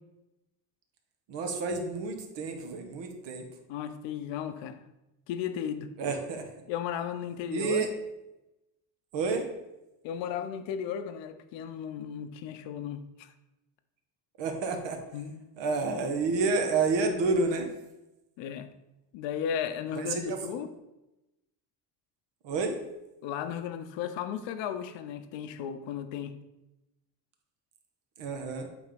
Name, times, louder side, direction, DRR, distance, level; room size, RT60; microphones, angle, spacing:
voice 1, 1.3-3.4 6.0-6.4 7.5-7.9 9.1-9.4 14.4-15.0 15.6-17.7 19.9-20.4 22.4-22.7 28.2-28.7, right 4 dB, 75° right, 4 dB, 1.4 m, -29 dB
voice 2, 3.7-4.8 5.3-5.9 6.7-7.9 10.0-13.3 15.1-15.4 18.4-18.7 19.1-20.7 23.2-26.4, left 8 dB, 85° left, 9 dB, 0.8 m, -35 dB
8.4 x 3.6 x 5.1 m, 0.96 s
cardioid pair, 120°, 43 cm